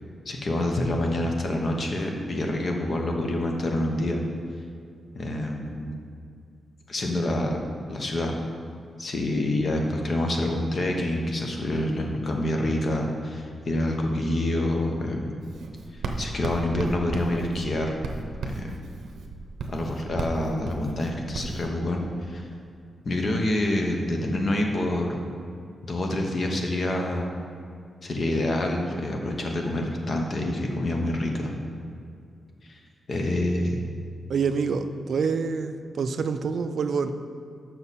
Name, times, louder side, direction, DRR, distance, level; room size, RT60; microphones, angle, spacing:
voice 1, 0.3-4.2 5.1-6.0 6.9-7.6 7.9-8.4 9.0-15.4 15.9-17.9 18.4-18.8 19.7-22.5 23.0-25.2 25.8-27.3 28.0-31.5 32.7-32.8 33.1-33.8, left 1 dB, 35° left, 2 dB, 0.8 m, -27 dB
Writing, 15.4-21.7, right 3 dB, 85° right, 0.7 m, -35 dB
voice 2, 34.3-37.1, right 5 dB, 55° right, 9 dB, 0.3 m, -26 dB
7.2 x 5.8 x 4.1 m, 2.3 s
wide cardioid pair, 175°, 0 cm